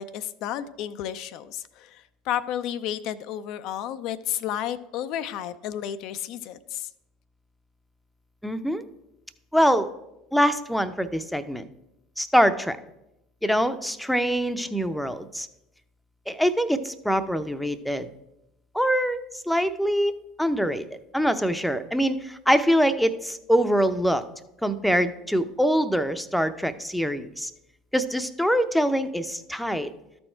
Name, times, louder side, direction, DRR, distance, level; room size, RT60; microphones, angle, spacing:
voice 1, 0.0-6.9, left 10 dB, 60° left, 12 dB, 0.4 m, -32 dB
voice 2, 8.4-8.8 9.5-9.9 10.3-11.7 12.2-12.8 13.4-15.5 16.3-18.1 18.7-20.1 20.4-20.8 21.1-24.2 24.6-27.5 27.9-29.9, equal, ahead, 11 dB, 0.6 m, -24 dB
13.0 x 4.3 x 4.5 m, 0.89 s
hypercardioid pair, 75°, 0 cm